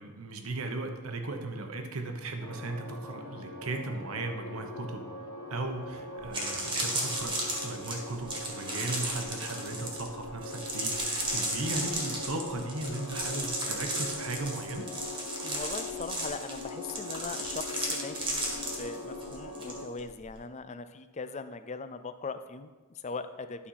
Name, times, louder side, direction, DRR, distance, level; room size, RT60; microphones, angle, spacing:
voice 1, 0.0-5.1 5.5-14.9, right 2 dB, 70° right, 4 dB, 1.1 m, -37 dB
sound 1, 2.4-19.9, left 2 dB, 75° left, 1.0 m, -42 dB
sound 2, 5.7-5.8 6.2-19.7 20.0-20.3, right 1 dB, 20° right, 1.6 m, -34 dB
voice 2, 15.4-23.7, left 4 dB, 30° left, 10 dB, 0.4 m, -40 dB
11.5 x 4.2 x 5.7 m, 1.3 s
head